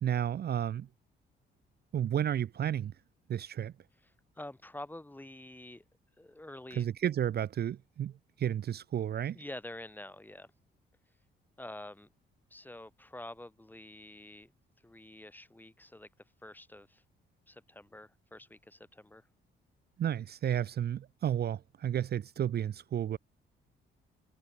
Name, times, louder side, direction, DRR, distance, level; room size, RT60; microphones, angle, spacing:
voice 1, 0.0-0.9 1.9-2.9 3.3-3.7 6.7-9.4 20.0-23.2, right 10 dB, 55° right, 0.8 m, -32 dB
voice 2, 4.4-5.8 6.2-6.9 9.3-10.5 11.6-12.1 12.5-14.5 14.8-16.1 16.4-17.0 17.5-19.3, left 1 dB, 10° left, 3.3 m, -47 dB
cardioid pair, 90°, 20 cm